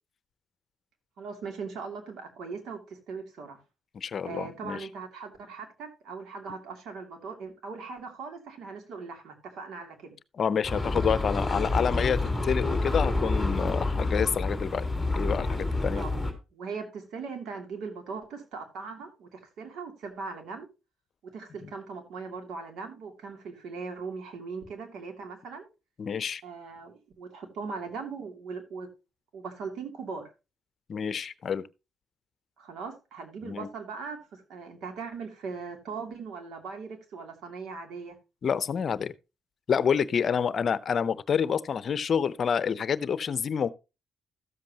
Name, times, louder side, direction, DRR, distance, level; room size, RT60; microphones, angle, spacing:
voice 1, 1.2-3.6 4.2-10.2 15.9-16.1 16.5-20.7 21.2-25.7 26.4-28.9 29.3-30.3 32.6-38.2, right 5 dB, 75° right, 2.8 m, -39 dB
voice 2, 3.9-4.8 10.4-14.9 15.2-16.0 26.0-26.4 30.9-31.6 33.4-33.7 38.4-39.1 39.7-43.7, left 7 dB, 50° left, 0.7 m, -28 dB
sound 1, 10.6-16.3, left 2 dB, ahead, 2.9 m, -28 dB
13.5 x 7.6 x 2.9 m
cardioid pair, 90°, 0 cm